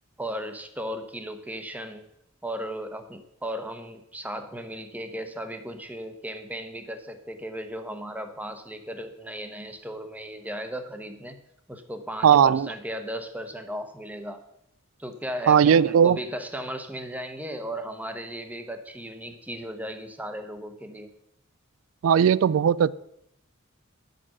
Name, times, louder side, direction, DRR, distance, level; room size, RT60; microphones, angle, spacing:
voice 1, 0.2-2.1 2.4-11.4 11.7-14.4 15.0-21.1, equal, 5° right, 7 dB, 0.8 m, -36 dB
voice 2, 12.2-12.7 15.5-16.2 22.0-22.9, right 8 dB, 65° right, 20 dB, 0.3 m, -18 dB
10.0 x 6.7 x 6.0 m, 0.80 s
head